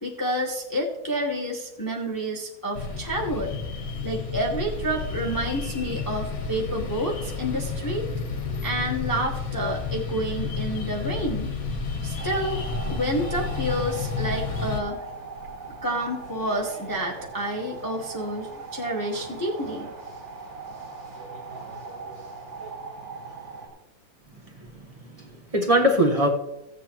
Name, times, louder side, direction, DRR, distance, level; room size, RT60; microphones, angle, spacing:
voice 1, 0.0-3.5 4.0-8.1 8.6-11.5 12.0-12.6 12.9-15.0 15.8-19.9, equal, 15° left, 0 dB, 0.9 m, -29 dB
sound 1, 2.7-14.8, left 4 dB, 55° left, 1.5 m, -31 dB
sound 2, 12.2-23.7, right 4 dB, 90° right, 3.1 m, -39 dB
voice 2, 24.6-26.3, equal, 25° right, 1 dB, 0.9 m, -23 dB
16.0 x 7.9 x 3.0 m, 0.92 s
omnidirectional pair, 2.0 m